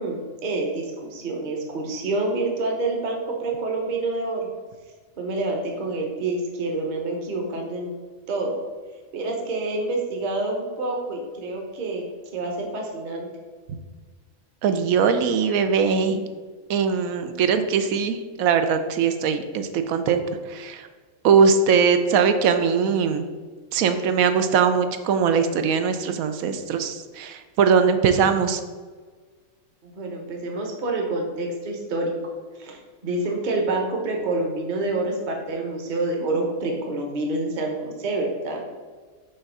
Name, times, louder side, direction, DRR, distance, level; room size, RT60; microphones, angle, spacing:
voice 1, 0.0-4.5 5.2-7.9 8.3-8.6 9.1-12.0 12.3-13.3 29.8-32.1 32.6-32.8 33.0-38.6, right 2 dB, 35° right, 1 dB, 1.0 m, -27 dB
voice 2, 14.6-16.2 16.7-20.2 20.5-20.9 21.2-23.3 23.7-28.6, right 6 dB, 75° right, 8 dB, 1.0 m, -21 dB
5.5 x 3.5 x 5.4 m, 1.5 s
omnidirectional pair, 1.5 m